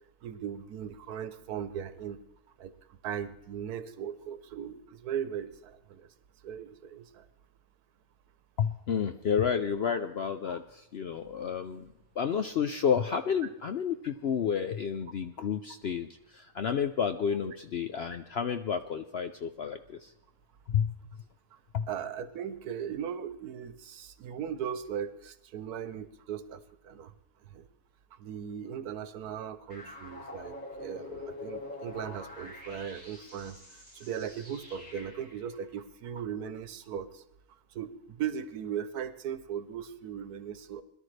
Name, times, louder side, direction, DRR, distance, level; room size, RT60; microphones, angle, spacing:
voice 1, 0.2-2.2 2.6-2.7 3.0-6.1 6.4-7.1 9.8-10.0 21.9-26.6 26.8-27.1 27.5-27.7 28.2-33.6 33.9-37.1 37.7-40.8, right 8 dB, 80° right, 12 dB, 1.4 m, -38 dB
voice 2, 8.6-11.9 12.2-20.1 20.7-20.9 21.7-21.9, left 7 dB, 60° left, 8 dB, 0.7 m, -30 dB
sound 1, 29.7-35.4, left 3 dB, 30° left, 5.0 m, -45 dB
21.5 x 12.0 x 3.3 m, 0.87 s
omnidirectional pair, 1.6 m